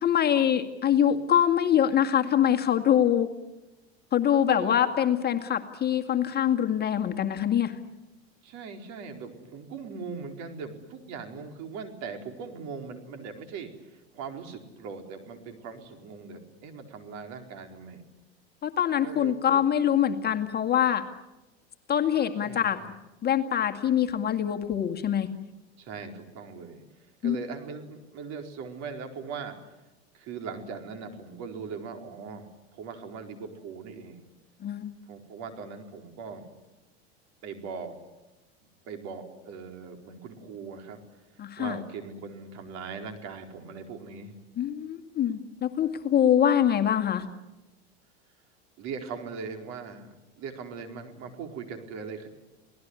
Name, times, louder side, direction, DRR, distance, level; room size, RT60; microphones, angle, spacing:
voice 1, 0.0-3.3 4.1-7.8 18.6-21.0 21.9-22.8 23.2-25.3 27.2-27.4 34.6-34.9 41.4-41.8 44.6-47.2, left 9 dB, 30° left, 5 dB, 2.1 m, -24 dB
voice 2, 8.4-18.0 19.0-19.6 22.4-22.9 25.8-26.8 27.2-29.6 30.1-34.2 35.1-36.5 37.4-38.0 38.9-41.0 41.6-44.3 48.8-52.3, right 5 dB, 55° right, 4 dB, 4.5 m, -40 dB
29.0 x 19.0 x 9.8 m, 1.0 s
hypercardioid pair, 100°, 32 cm